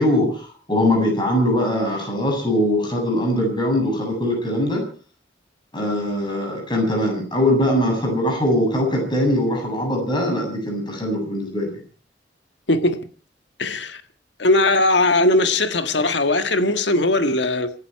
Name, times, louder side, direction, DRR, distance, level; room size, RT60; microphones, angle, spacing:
voice 1, 0.0-4.9 5.7-11.7, left 1 dB, 25° left, 7.9 m, -21 dB
voice 2, 12.7-13.0 13.6-14.0 14.4-17.7, left 2 dB, 70° left, 1.7 m, -19 dB
27.0 x 11.5 x 4.7 m
head